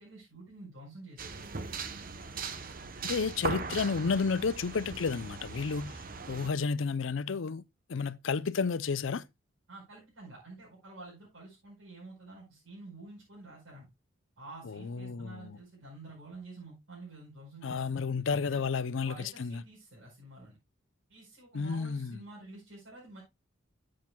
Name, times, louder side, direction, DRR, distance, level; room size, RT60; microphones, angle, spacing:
voice 1, 0.0-1.6 9.7-13.9 14.4-18.0 18.5-18.6 19.0-20.6 21.1-23.2, right 2 dB, 80° right, 4.9 m, -49 dB
sound 1, 1.2-6.5, right 4 dB, 45° right, 0.9 m, -39 dB
voice 2, 3.0-6.0 6.3-7.6 7.9-9.2 14.7-15.6 17.6-19.1 19.4-19.5 21.5-22.2, left 5 dB, 70° left, 0.5 m, -31 dB
12.0 x 7.5 x 2.2 m
head